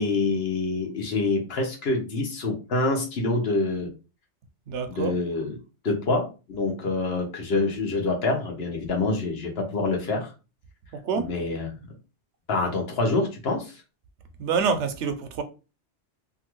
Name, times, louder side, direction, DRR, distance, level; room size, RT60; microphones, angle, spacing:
voice 1, 0.0-3.9 4.9-5.6 5.8-10.3 11.1-11.7 12.5-13.7, left 3 dB, 65° left, 1.1 m, -26 dB
voice 2, 4.7-5.1 11.0-11.3 14.4-15.4, right 6 dB, 80° right, 0.9 m, -26 dB
2.8 x 2.4 x 3.0 m
omnidirectional pair, 1.2 m